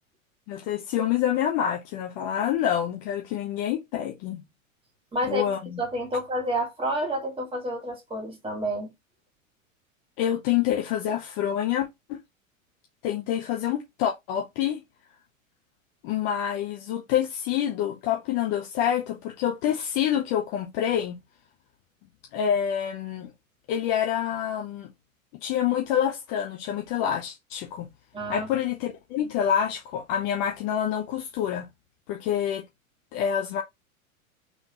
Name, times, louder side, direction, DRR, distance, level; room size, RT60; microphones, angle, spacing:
voice 1, 0.5-4.4 5.3-5.8 10.2-12.2 13.0-14.8 16.0-21.2 22.3-23.3 23.7-24.9 25.4-27.9 28.3-31.7 32.1-32.6 33.1-33.6, left 9 dB, 40° left, 0.8 m, -27 dB
voice 2, 5.1-5.4 5.8-8.9 28.1-28.5, equal, 15° right, 1.9 m, -29 dB
3.9 x 3.4 x 3.0 m
figure-of-eight pair, 95°, 42 cm